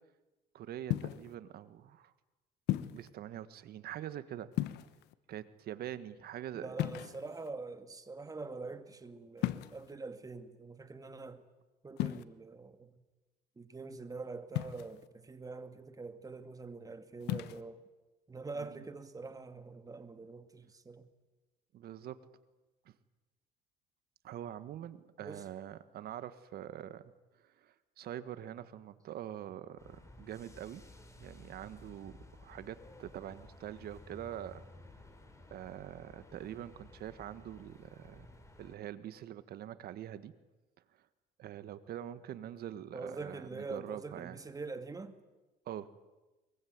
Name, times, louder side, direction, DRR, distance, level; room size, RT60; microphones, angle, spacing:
voice 1, 0.5-2.1 2.9-4.5 5.3-6.7 18.5-18.8 21.7-22.2 22.8-22.9 24.2-27.0 27.6-30.8 31.2-34.6 35.5-38.3 38.6-40.3 41.4-44.4 45.6-45.9, right 11 dB, 65° right, 1.6 m, -44 dB
sound 1, 0.9-1.3 2.7-3.1 4.5-5.2 6.8-7.5 9.4-9.9 12.0-12.2 14.6-15.1 17.2-17.6, left 15 dB, 90° left, 1.1 m, -35 dB
voice 2, 6.5-11.4 11.8-13.0 13.6-17.8 18.3-21.1 25.2-25.4 42.9-45.1, right 3 dB, 20° right, 2.2 m, -45 dB
sound 2, 29.8-38.8, left 2 dB, 15° left, 4.3 m, -55 dB
23.0 x 22.5 x 9.6 m
cardioid pair, 110°, 17 cm